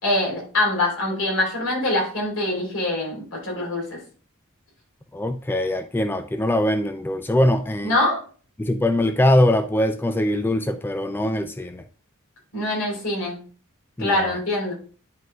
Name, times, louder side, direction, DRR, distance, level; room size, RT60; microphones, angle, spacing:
voice 1, 0.0-4.0 7.8-8.2 12.5-13.5 14.0-14.7, left 1 dB, 80° left, 3.7 m, -24 dB
voice 2, 5.1-7.9 8.6-11.8 14.0-14.4, left 1 dB, 10° left, 0.3 m, -22 dB
11.0 x 4.6 x 2.3 m
head